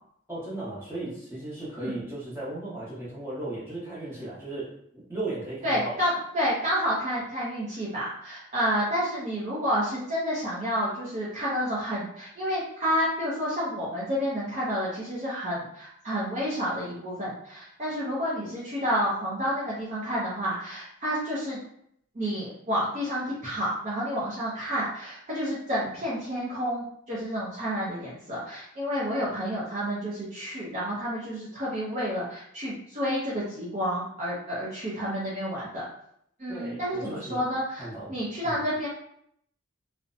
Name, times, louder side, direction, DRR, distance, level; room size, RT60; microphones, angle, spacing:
voice 1, 0.3-6.0 36.5-37.4 37.8-38.1 38.4-38.6, right 2 dB, 10° right, -8 dB, 0.9 m, -36 dB
voice 2, 5.6-21.6 22.2-35.8 36.4-38.9, equal, 35° right, -8 dB, 0.6 m, -30 dB
2.6 x 2.1 x 2.5 m, 0.70 s
head